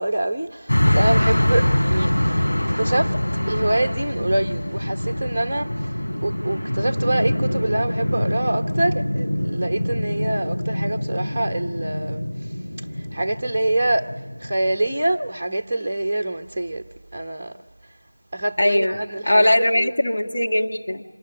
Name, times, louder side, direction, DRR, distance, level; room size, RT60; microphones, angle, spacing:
voice 1, 0.0-2.5 2.8-3.1 3.5-5.7 6.2-12.2 13.1-14.1 14.4-16.9 17.1-17.5 18.3-19.9, right 1 dB, 20° right, 0.9 m, -25 dB
sound 1, 0.7-14.9, left 1 dB, 65° left, 4.4 m, -24 dB
voice 2, 18.6-21.0, left 1 dB, 45° left, 1.7 m, -20 dB
26.0 x 20.0 x 9.7 m
figure-of-eight pair, 175°, 0 cm